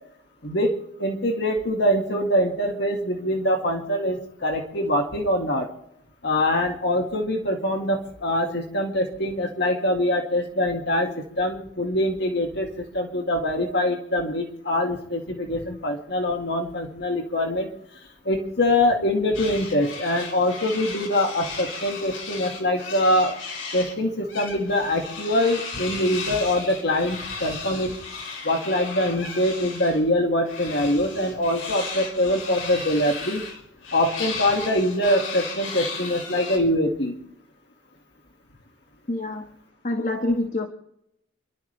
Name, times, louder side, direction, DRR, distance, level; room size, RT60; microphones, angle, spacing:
voice 1, 0.4-5.7 6.2-17.7 18.2-23.3 23.7-27.9 28.4-33.4 33.9-37.1, left 1 dB, 60° left, 2 dB, 2.1 m, -24 dB
sound 1, 19.3-24.0 24.3-30.0 30.5-36.6, left 4 dB, 85° left, 4.3 m, -35 dB
voice 2, 39.1-39.5 39.8-40.7, left 2 dB, 40° left, 4 dB, 1.4 m, -26 dB
28.0 x 12.0 x 3.4 m, 0.77 s
head